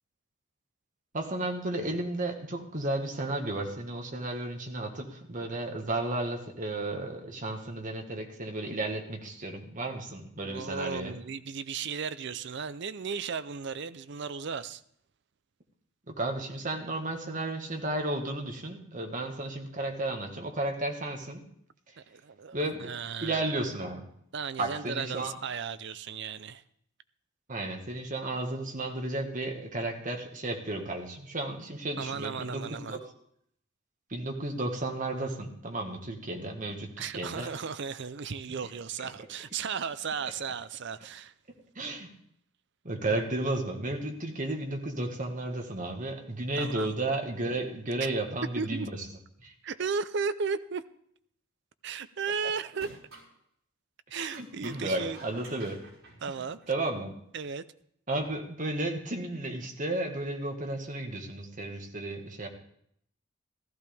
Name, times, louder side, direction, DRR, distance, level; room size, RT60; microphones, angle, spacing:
voice 1, 1.1-11.2 16.1-21.4 22.5-22.9 23.2-24.1 24.6-25.3 27.5-33.1 34.1-37.5 41.7-42.1 42.8-48.9 49.4-49.5 54.1-55.8 56.7-57.1 58.1-62.5, right 2 dB, 40° right, 3 dB, 1.7 m, -33 dB
voice 2, 10.4-14.8 22.0-23.5 24.3-26.6 32.0-33.0 37.0-41.3 46.5-47.0 48.0-48.1 48.6-48.9 49.6-50.8 51.8-53.0 54.1-55.2 56.2-56.6 57.3-57.6, right 5 dB, 55° right, 14 dB, 0.5 m, -35 dB
sound 1, 52.7-53.3 54.3-57.0, right 2 dB, 80° right, 4.3 m, -50 dB
15.0 x 13.5 x 3.5 m, 0.69 s
head